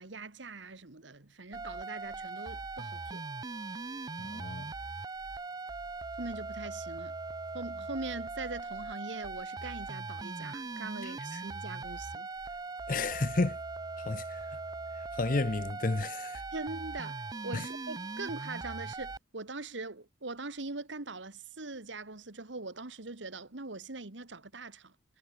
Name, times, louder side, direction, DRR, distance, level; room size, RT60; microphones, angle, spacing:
voice 1, 0.0-3.2 6.2-7.1 7.5-12.3 16.5-24.9, right 3 dB, 80° right, 1.8 m, -42 dB
sound 1, 1.5-19.2, right 3 dB, 20° right, 0.4 m, -40 dB
voice 2, 4.2-4.7 11.0-11.4 12.9-13.6 14.0-14.6 15.1-16.4 17.5-17.6, left 3 dB, 45° left, 0.7 m, -32 dB
head